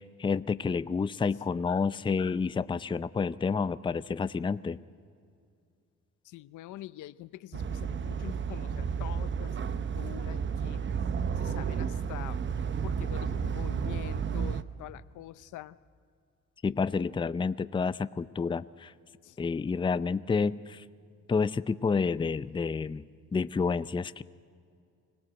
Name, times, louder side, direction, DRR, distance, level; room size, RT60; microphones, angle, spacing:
voice 1, 0.0-4.8 16.6-18.9 19.4-20.8 21.3-23.0 23.3-24.2, left 5 dB, 15° left, 15 dB, 0.4 m, -29 dB
voice 2, 6.2-10.8 11.4-12.4 12.8-15.8 19.2-19.4, left 14 dB, 80° left, 16 dB, 0.6 m, -45 dB
sound 1, 7.5-14.6, right 6 dB, 40° right, 0.8 m, -32 dB
25.0 x 17.5 x 7.9 m, 2.4 s
cardioid pair, 90°, 30 cm